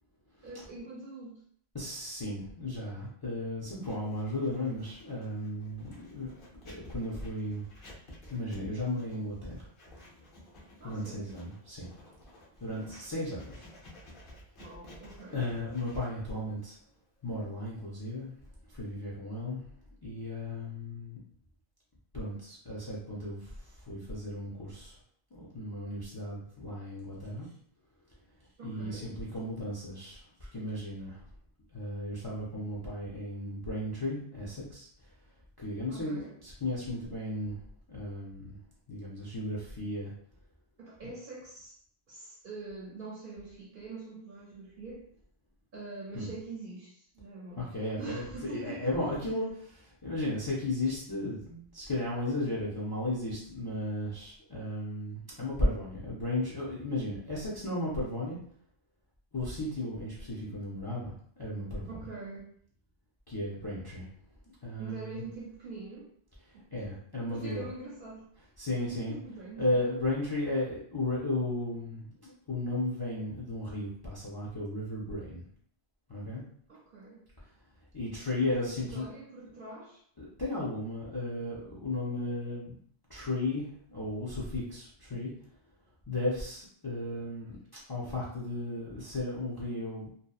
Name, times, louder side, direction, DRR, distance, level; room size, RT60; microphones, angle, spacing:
voice 1, 0.4-1.4 10.8-11.4 14.6-15.4 28.6-29.1 35.9-36.3 40.8-41.7 42.1-45.0 45.7-47.7 48.0-48.9 61.9-62.5 64.8-66.1 66.5-66.7 67.3-68.3 68.9-69.8 76.7-77.2 78.6-80.0, right 3 dB, 60° right, -5 dB, 0.7 m, -44 dB
voice 2, 1.7-6.3 6.6-7.6 8.3-9.7 10.8-11.9 12.6-13.7 15.3-16.8 17.2-18.3 18.6-19.6 20.0-21.2 22.1-24.9 25.3-27.5 28.6-30.2 30.5-31.2 31.7-34.9 35.6-37.6 37.9-38.6 38.9-40.1 46.1-46.3 47.6-58.4 59.3-61.1 61.4-61.9 63.3-64.1 64.6-65.2 66.7-67.7 68.6-69.2 69.6-75.4 76.1-76.4 77.9-79.1 80.2-82.8 83.1-85.3 86.1-87.6 87.9-90.1, left 1 dB, 35° left, -6 dB, 0.4 m, -35 dB
Writing, 3.8-18.6, left 1 dB, 55° left, 0.9 m, -54 dB
2.7 x 2.1 x 2.3 m, 0.62 s
omnidirectional pair, 1.1 m